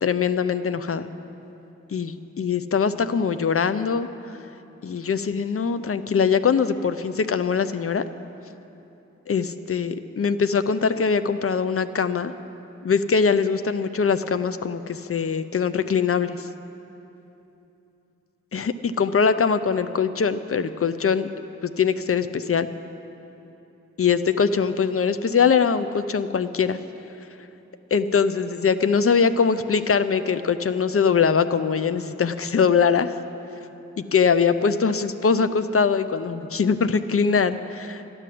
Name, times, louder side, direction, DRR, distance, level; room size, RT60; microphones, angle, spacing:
voice 1, 0.0-1.1 1.9-4.1 4.8-8.0 9.3-12.3 12.8-16.4 18.5-21.3 21.6-22.7 24.0-26.8 27.9-33.1 34.0-38.0, left 6 dB, 50° left, 12 dB, 0.6 m, -22 dB
12.5 x 10.5 x 7.6 m, 3.0 s
wide cardioid pair, 65°, 29 cm